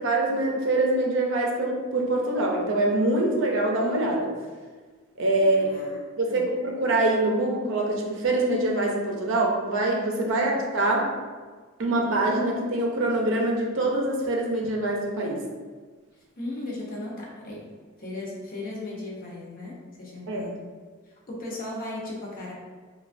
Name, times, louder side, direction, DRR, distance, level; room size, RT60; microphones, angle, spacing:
voice 1, 0.0-4.3 5.2-5.8 6.2-11.0 11.8-15.4 20.3-20.4, right 2 dB, 65° right, -1 dB, 0.5 m, -24 dB
voice 2, 5.4-6.0 6.3-6.5 10.3-10.6 16.4-17.7 18.0-20.6 21.1-22.5, left 2 dB, 45° left, -4 dB, 0.6 m, -36 dB
3.1 x 2.2 x 2.5 m, 1.5 s
head